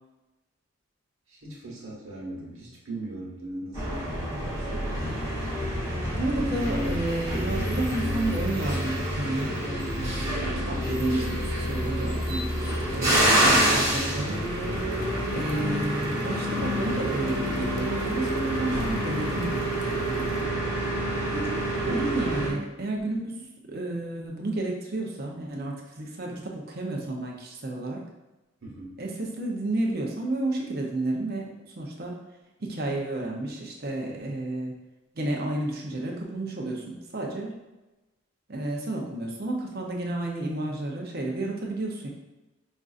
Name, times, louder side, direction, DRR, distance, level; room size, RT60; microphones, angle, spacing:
voice 1, 1.3-5.3 6.3-7.0 20.3-20.7 28.6-29.0, right 1 dB, 75° right, -4 dB, 1.1 m, -39 dB
sound 1, 3.7-22.5, equal, 15° right, 1.1 m, -27 dB
voice 2, 5.0-5.4 6.1-9.5 9.9-14.4 15.3-20.3 21.3-23.4 23.7-28.0 29.0-32.2 32.6-34.7 35.2-37.5 38.5-42.1, right 2 dB, 45° right, 0 dB, 0.6 m, -31 dB
sound 2, 10.8-20.4, left 2 dB, 75° left, 0.5 m, -45 dB
sound 3, 16.5-22.0, left 1 dB, 20° left, 0.5 m, -44 dB
5.2 x 2.5 x 2.4 m, 1.1 s
head